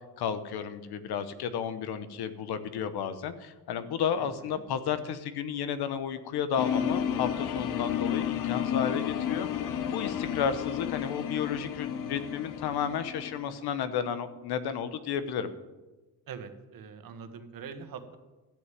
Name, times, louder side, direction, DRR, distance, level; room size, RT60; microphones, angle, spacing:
voice 1, 0.2-15.5, left 8 dB, 90° left, 12 dB, 1.1 m, -32 dB
sound 1, 6.6-13.5, left 9 dB, 60° left, 0.8 m, -32 dB
voice 2, 16.3-18.2, right 6 dB, 65° right, 8 dB, 1.5 m, -43 dB
13.5 x 6.7 x 9.3 m, 1.2 s
cardioid pair, 155°, 37 cm